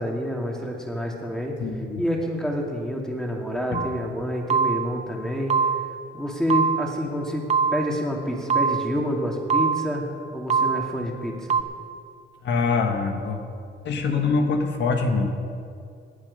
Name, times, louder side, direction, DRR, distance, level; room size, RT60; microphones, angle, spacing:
voice 1, 0.0-1.5 2.0-5.5 6.1-7.5 7.7-10.1 10.3-11.6, equal, 5° left, 0 dB, 2.6 m, -28 dB
voice 2, 1.6-2.0 3.7-3.8 12.4-13.4 13.8-15.3, left 4 dB, 65° left, 4 dB, 1.6 m, -24 dB
sound 1, 3.7-4.1 4.5-5.1 5.5-6.1 6.5-7.1 7.5-8.1 8.5-9.1 9.5-10.1 10.5-11.1 11.5-11.6, right 6 dB, 35° right, 0.6 m, -24 dB
19.5 x 7.7 x 5.5 m, 2.3 s
cardioid pair, 90°, 20 cm